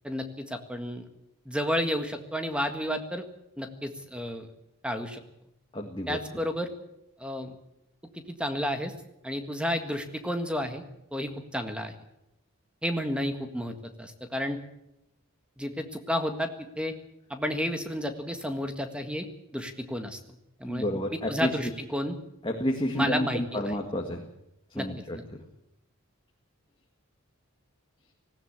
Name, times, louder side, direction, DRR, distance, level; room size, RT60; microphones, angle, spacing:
voice 1, 0.0-1.0 1.4-3.2 3.6-4.5 4.8-5.2 6.1-6.7 7.2-7.5 8.4-8.9 9.2-10.8 11.1-11.9 12.8-14.6 15.6-16.9 17.3-19.3 19.5-20.2 20.6-22.2 22.8-23.7 24.7-24.9 25.1-25.2, equal, 5° right, 7 dB, 1.6 m, -31 dB
voice 2, 5.7-6.2 20.6-21.5 22.4-24.3 24.7-25.4, equal, 20° left, 2 dB, 1.9 m, -30 dB
19.0 x 16.5 x 8.8 m, 0.85 s
head